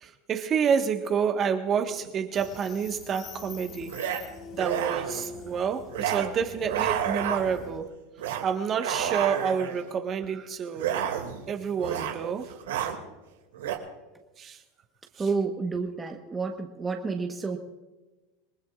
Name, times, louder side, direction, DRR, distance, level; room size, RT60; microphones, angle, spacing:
voice 1, 0.0-4.0 4.5-7.9 8.4-10.9 11.5-12.5 14.4-14.6, right 7 dB, 35° right, 1.4 m, -28 dB
sound 1, 1.9-2.1 3.9-4.2 4.5-5.3 5.9-6.3 6.6-7.7 8.2-8.5 8.8-9.8 10.7-11.5 11.8-12.2 12.5-13.0 13.5-13.8, right 9 dB, 85° right, 2.4 m, -30 dB
sound 2, 2.3-7.8, left 5 dB, 45° left, 3.0 m, -44 dB
voice 2, 15.2-17.6, right 4 dB, 15° right, 1.3 m, -30 dB
28.0 x 19.0 x 2.5 m
supercardioid pair, 115°, 0 cm